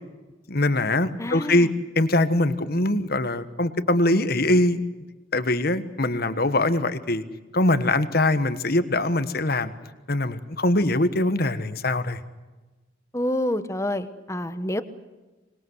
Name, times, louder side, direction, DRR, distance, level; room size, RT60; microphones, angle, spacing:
voice 1, 0.5-1.7 1.9-4.8 5.3-7.2 7.5-9.7 10.1-12.2, left 2 dB, 50° left, 12 dB, 1.4 m, -22 dB
voice 2, 1.2-1.7 13.1-14.8, left 1 dB, 15° left, 12 dB, 1.1 m, -28 dB
25.5 x 21.0 x 8.1 m, 1.2 s
head